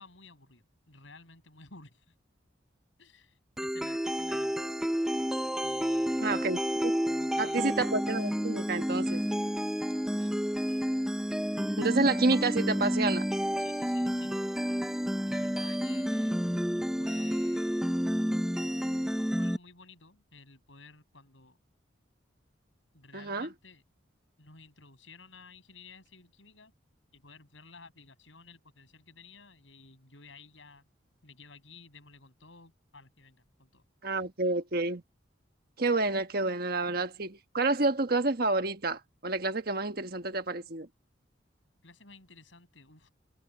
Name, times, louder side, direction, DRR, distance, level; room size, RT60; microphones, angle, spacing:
voice 1, 0.0-2.1 3.0-4.7 5.6-6.6 7.1-7.8 10.1-10.3 13.6-14.4 15.2-16.7 17.0-17.9 19.4-21.6 22.9-23.8 24.4-26.7 27.1-30.9 31.2-33.8 41.8-43.1, left 4 dB, 80° left, 6.8 m, -54 dB
sound 1, 3.6-19.6, equal, 5° right, 0.5 m, -30 dB
voice 2, 6.2-6.9 7.4-9.2 11.8-13.2 23.1-23.5 34.0-35.0 35.8-40.9, right 3 dB, 50° right, 1.4 m, -29 dB
head